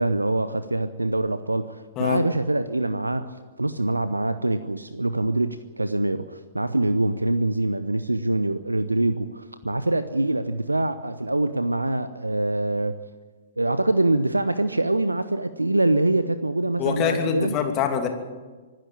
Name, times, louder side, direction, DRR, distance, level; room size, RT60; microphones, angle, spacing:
voice 1, 0.0-3.3 3.6-12.9 13.6-17.6, right 2 dB, 85° right, 13 dB, 0.8 m, -24 dB
voice 2, 16.8-18.1, left 8 dB, 30° left, 5 dB, 2.7 m, -24 dB
24.5 x 13.0 x 8.8 m, 1.4 s
figure-of-eight pair, 110°, 0 cm